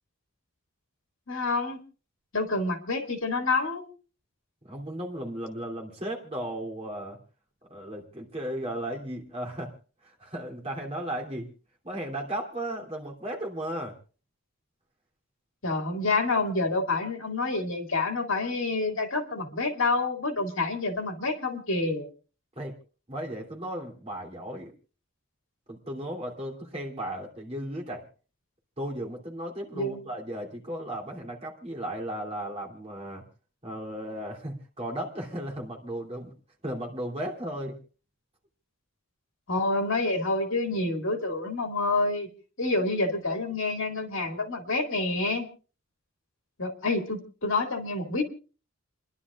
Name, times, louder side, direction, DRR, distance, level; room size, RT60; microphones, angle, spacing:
voice 1, 1.3-1.8 2.3-3.9 15.6-22.1 29.7-30.0 39.5-42.3 42.6-45.5 46.6-48.2, left 3 dB, 60° left, 5 dB, 2.2 m, -28 dB
voice 2, 4.6-7.2 7.7-9.7 10.0-11.5 11.8-14.0 22.5-22.7 23.1-24.7 25.7-28.0 28.8-33.2 33.6-36.3 36.6-37.8, right 1 dB, 30° right, 1 dB, 3.0 m, -35 dB
30.0 x 11.0 x 2.4 m, 0.36 s
head